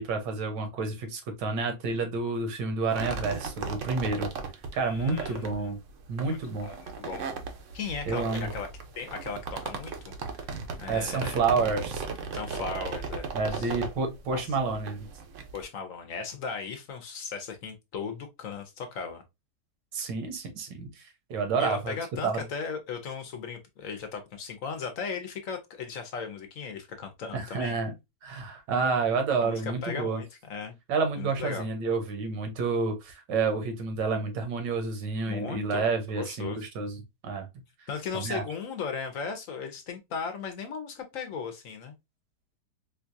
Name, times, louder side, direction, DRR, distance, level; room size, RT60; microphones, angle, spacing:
voice 1, 0.0-4.3 4.7-5.8 6.1-6.7 8.1-8.5 10.9-12.0 13.3-15.1 19.9-22.0 22.2-22.4 27.3-27.9 28.2-30.2 30.9-37.5 38.1-38.4, right 4 dB, 80° right, 1.6 m, -29 dB
sound 1, 2.9-15.6, right 5 dB, 60° right, 0.8 m, -37 dB
voice 2, 4.8-5.7 6.3-7.3 7.7-8.7 8.9-11.5 12.3-13.7 14.3-14.4 15.5-19.2 21.6-27.8 29.4-30.7 31.2-31.7 35.3-35.9 36.2-36.7 37.9-41.9, left 5 dB, 65° left, 0.9 m, -37 dB
4.4 x 2.3 x 2.5 m
omnidirectional pair, 1.9 m